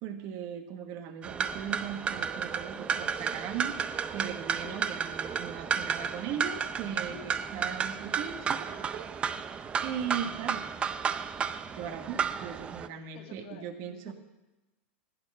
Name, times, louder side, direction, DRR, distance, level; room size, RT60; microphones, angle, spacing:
voice 1, 0.0-10.7 11.7-14.1, right 8 dB, 40° right, 7 dB, 1.3 m, -39 dB
sound 1, 1.2-12.9, right 6 dB, 15° right, 0.5 m, -33 dB
voice 2, 7.1-7.4 13.1-14.1, left 7 dB, 50° left, 3 dB, 1.9 m, -49 dB
14.5 x 8.7 x 5.4 m, 1.0 s
supercardioid pair, 150°, 6 cm